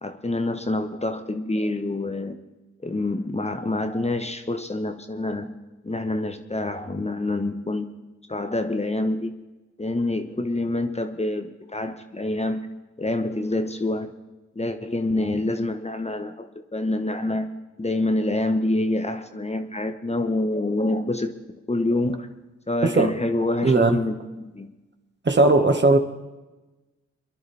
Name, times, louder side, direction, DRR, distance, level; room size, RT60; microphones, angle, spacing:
voice 1, 0.0-2.4 2.8-5.5 5.8-7.9 8.3-9.3 9.8-12.7 13.0-14.1 14.5-17.5 17.8-21.3 21.7-22.3 22.7-24.7 25.6-25.8, left 2 dB, 20° left, 1.2 m, -26 dB
voice 2, 23.6-24.0 25.2-26.0, right 2 dB, 40° right, 1.7 m, -17 dB
24.0 x 11.0 x 3.5 m
supercardioid pair, 50°, 29 cm